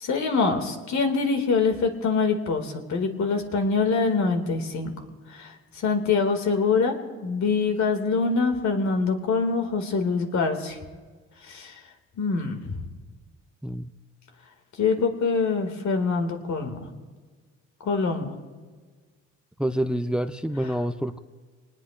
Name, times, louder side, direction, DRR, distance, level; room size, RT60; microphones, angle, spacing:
voice 1, 0.0-4.9 5.4-5.5 5.8-6.9 7.2-10.8 11.5-11.7 12.2-12.8 14.8-16.8 17.8-18.3, left 4 dB, 70° left, 4 dB, 2.4 m, -24 dB
voice 2, 19.6-21.2, equal, 5° right, 9 dB, 0.6 m, -27 dB
26.5 x 19.5 x 2.6 m, 1.5 s
cardioid pair, 90°, 30 cm